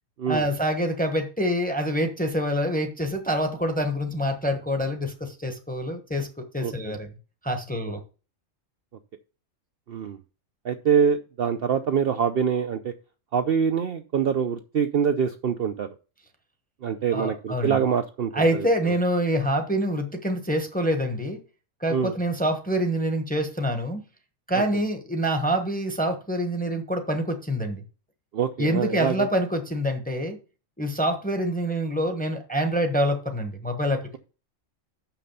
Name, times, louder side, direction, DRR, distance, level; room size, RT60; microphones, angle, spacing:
voice 1, 0.3-7.1 7.4-8.0 17.1-17.8 18.3-21.4 21.8-24.0 24.5-27.8 28.6-30.4 30.8-34.2, equal, 5° left, 5 dB, 1.0 m, -26 dB
voice 2, 9.9-10.2 10.6-12.9 13.3-15.9 16.8-18.9 21.9-22.1 24.5-24.6 28.3-29.3, right 7 dB, 55° right, 7 dB, 0.8 m, -25 dB
6.3 x 5.9 x 6.9 m, 0.34 s
omnidirectional pair, 1.3 m